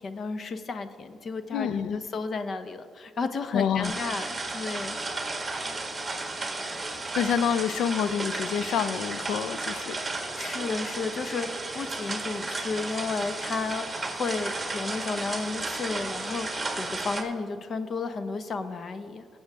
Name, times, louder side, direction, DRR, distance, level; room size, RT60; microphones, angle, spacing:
voice 1, 0.0-5.0 10.3-19.3, left 4 dB, 50° left, 10 dB, 0.8 m, -33 dB
voice 2, 1.5-2.0 3.5-3.9 7.2-10.0, left 8 dB, 80° left, 15 dB, 0.4 m, -27 dB
sound 1, 3.8-17.2, right 2 dB, 20° right, 1.7 m, -33 dB
19.0 x 7.9 x 3.6 m, 2.1 s
cardioid pair, 90°, 0 cm